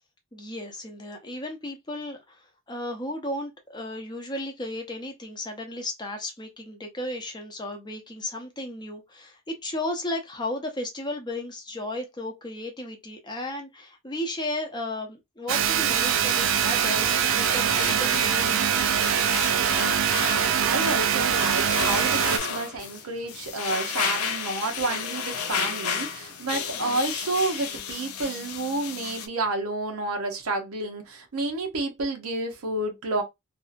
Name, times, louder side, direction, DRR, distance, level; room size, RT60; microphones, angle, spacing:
voice 1, 0.3-19.2, left 1 dB, 20° left, 0.6 m, -34 dB
sound 1, 15.5-22.4, right 9 dB, 60° right, 0.3 m, -23 dB
sound 2, 15.9-29.3, left 6 dB, 80° left, 0.5 m, -33 dB
voice 2, 20.6-33.2, right 2 dB, 80° right, 0.7 m, -30 dB
2.7 x 2.4 x 2.4 m
head